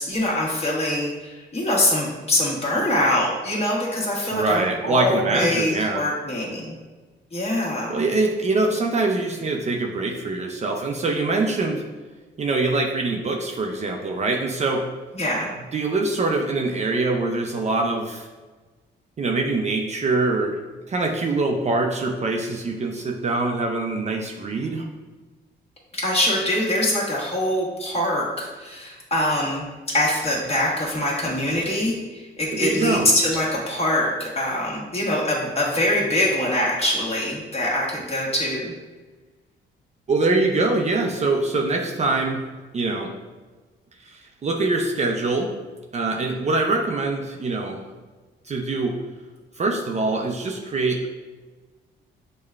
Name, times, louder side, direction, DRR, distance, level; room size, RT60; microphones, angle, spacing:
voice 1, 0.0-6.7 7.3-8.0 15.1-15.5 25.9-29.6 29.9-38.7, left 1 dB, 30° left, -4 dB, 1.3 m, -24 dB
voice 2, 4.3-6.0 7.9-11.8 12.4-14.8 15.7-18.3 19.2-20.5 20.9-24.8 32.5-33.1 40.1-42.4 42.7-43.1 44.1-44.2 44.4-45.5 45.9-47.8 48.5-48.9 49.6-51.1, right 3 dB, 35° right, 1 dB, 0.5 m, -23 dB
6.4 x 2.2 x 2.4 m, 1.3 s
cardioid pair, 90°, 20 cm